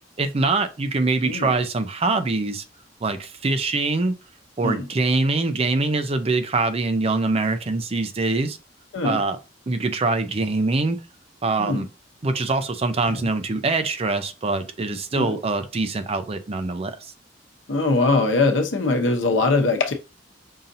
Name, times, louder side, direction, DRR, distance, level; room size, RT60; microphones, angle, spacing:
voice 1, 0.0-2.6 3.0-4.2 4.6-8.6 9.0-9.4 9.7-11.0 11.4-11.9 12.2-17.0, right 3 dB, 30° right, 0.5 m, -24 dB
voice 2, 17.7-19.9, left 3 dB, 85° left, 0.9 m, -21 dB
5.5 x 2.7 x 2.6 m
head